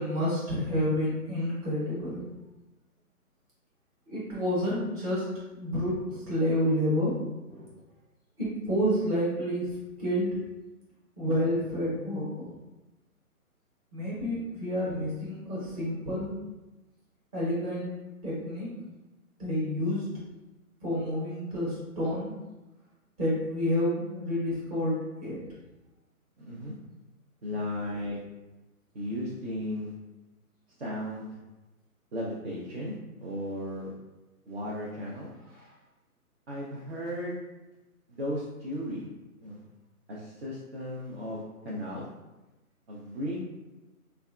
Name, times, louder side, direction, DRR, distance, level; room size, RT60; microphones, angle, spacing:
voice 1, 0.0-2.2 4.1-5.3 5.6-7.2 7.5-7.7 8.4-9.7 10.0-10.3 11.2-12.5 13.9-16.3 17.3-17.9 18.2-18.7 19.4-20.1 20.8-22.4 23.2-25.4, equal, 25° right, -8 dB, 0.9 m, -29 dB
voice 2, 26.4-26.7 27.4-28.2 28.9-29.9 30.8-31.4 32.1-33.9 34.5-35.3 36.5-37.4 38.1-39.0 39.4-39.6 40.1-42.0 42.9-43.4, equal, 45° right, -5 dB, 0.5 m, -35 dB
3.2 x 2.3 x 2.3 m, 1.1 s
hypercardioid pair, 155°, 45 cm